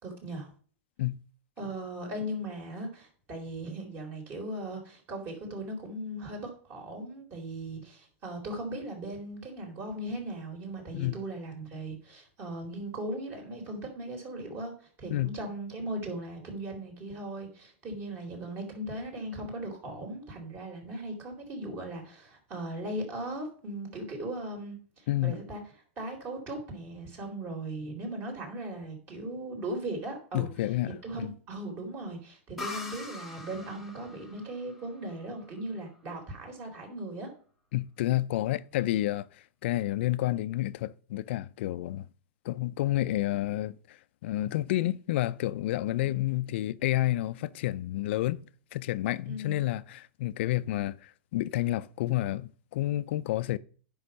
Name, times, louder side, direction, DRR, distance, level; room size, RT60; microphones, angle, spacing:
voice 1, 0.0-0.5 1.6-25.6 26.0-30.5 31.0-37.3 46.0-46.1 49.3-49.6, right 1 dB, 30° right, 3.8 m, -38 dB
voice 2, 30.3-31.3 37.7-39.3 39.6-42.1 42.4-48.4 48.7-53.6, left 15 dB, 60° left, 0.6 m, -30 dB
sound 1, 32.6-36.1, left 2 dB, ahead, 1.2 m, -43 dB
9.9 x 5.7 x 5.3 m
supercardioid pair, 150°, 7 cm